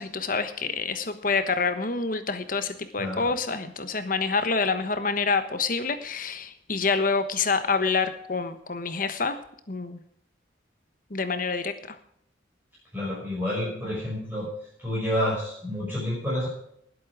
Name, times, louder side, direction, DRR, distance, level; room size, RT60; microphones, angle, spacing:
voice 1, 0.0-9.4 9.7-10.0 11.1-12.0, left 4 dB, 45° left, 11 dB, 1.2 m, -27 dB
voice 2, 3.0-3.3 12.9-14.5 14.8-16.5, left 1 dB, 10° right, -8 dB, 5.9 m, -29 dB
19.5 x 8.5 x 5.0 m, 0.70 s
head